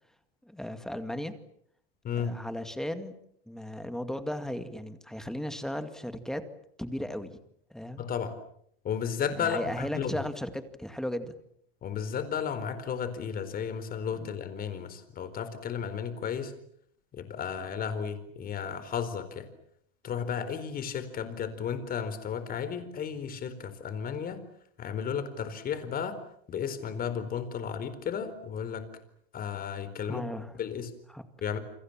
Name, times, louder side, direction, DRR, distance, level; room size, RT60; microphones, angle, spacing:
voice 1, 0.4-1.4 2.2-3.1 3.5-6.4 6.8-7.4 7.7-8.0 9.3-11.3 30.0-30.5 31.1-31.2, left 1 dB, ahead, 9 dB, 2.2 m, -36 dB
voice 2, 8.0-8.3 8.8-10.1 11.8-16.5 17.1-19.5 20.0-24.4 24.8-26.2 26.5-28.8 29.3-30.3 30.6-30.9 31.4-31.6, left 7 dB, 30° left, 12 dB, 4.4 m, -33 dB
29.0 x 26.5 x 7.5 m, 0.69 s
supercardioid pair, 145°, 29 cm